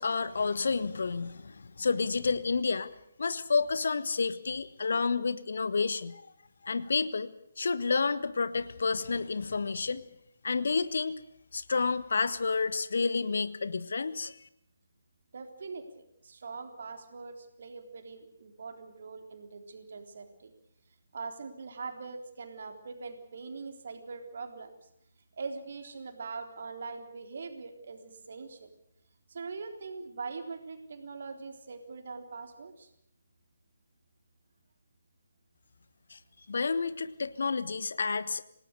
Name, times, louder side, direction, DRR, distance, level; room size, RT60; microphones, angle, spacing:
voice 1, 0.0-2.9 3.2-6.2 6.6-7.3 7.6-10.0 10.4-11.2 11.5-14.4 36.1-36.2 36.5-38.4, left 4 dB, 60° left, 14 dB, 1.4 m, -30 dB
voice 2, 15.3-20.5 21.1-24.7 25.4-28.7 29.3-32.9, right 4 dB, 50° right, 6 dB, 3.7 m, -42 dB
27.5 x 18.5 x 6.7 m, 0.73 s
figure-of-eight pair, 140°, 0 cm